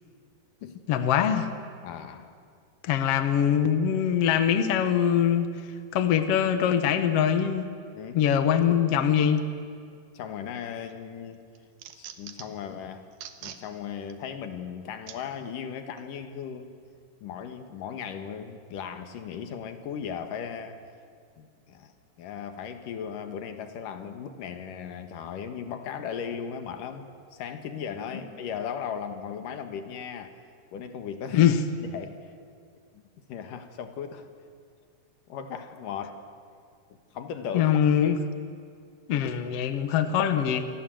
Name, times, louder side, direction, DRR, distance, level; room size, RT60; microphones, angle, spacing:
voice 1, 0.9-1.5 2.8-5.5 5.9-7.7 8.1-9.4 31.3-31.6 37.5-38.2 39.1-40.7, left 9 dB, 80° left, 9 dB, 1.3 m, -23 dB
voice 2, 1.8-2.3 7.9-8.2 10.1-11.4 11.9-13.1 13.4-16.7 17.2-20.8 21.4-30.3 30.7-31.5 31.8-32.3 32.9-33.0 33.3-34.3 35.3-36.2 36.9-37.8, left 7 dB, 60° left, 7 dB, 2.8 m, -37 dB
sound 1, 10.5-11.0 11.3-12.6 13.1-13.6 14.1-14.2 15.1-15.2 16.0-16.1, right 10 dB, 70° right, 2.9 m, -43 dB
28.5 x 24.5 x 7.8 m, 2.2 s
omnidirectional pair, 4.9 m